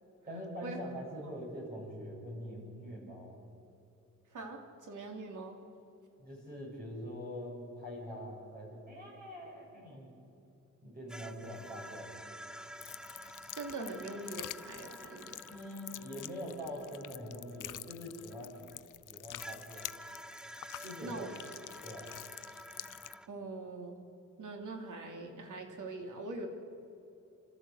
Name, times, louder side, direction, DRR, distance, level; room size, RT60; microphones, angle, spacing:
voice 1, 0.2-3.4 6.2-10.1 10.8-12.3 15.5-18.5 19.1-19.9 20.8-21.3 21.8-22.1, equal, 30° right, -3 dB, 7.3 m, -44 dB
voice 2, 4.3-5.6 13.5-15.5 21.0-21.3 23.3-24.0 24.4-26.5, right 2 dB, 75° right, 3 dB, 3.1 m, -42 dB
sound 1, 11.1-18.8 19.4-23.3, equal, 5° right, 0.4 m, -50 dB
sound 2, 12.8-23.1, left 13 dB, 80° left, 0.5 m, -47 dB
29.5 x 13.0 x 8.1 m, 2.8 s
wide cardioid pair, 130°, 31 cm